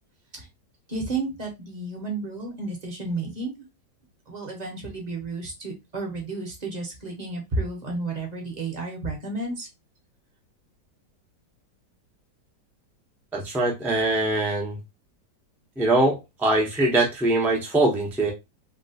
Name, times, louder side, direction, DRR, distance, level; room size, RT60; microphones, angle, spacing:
voice 1, 0.9-3.6 4.3-9.7, right 3 dB, 30° right, 0.8 m, -32 dB
voice 2, 13.3-14.8 15.8-18.3, right 2 dB, ahead, 0.5 m, -22 dB
3.0 x 2.9 x 2.8 m
omnidirectional pair, 1.9 m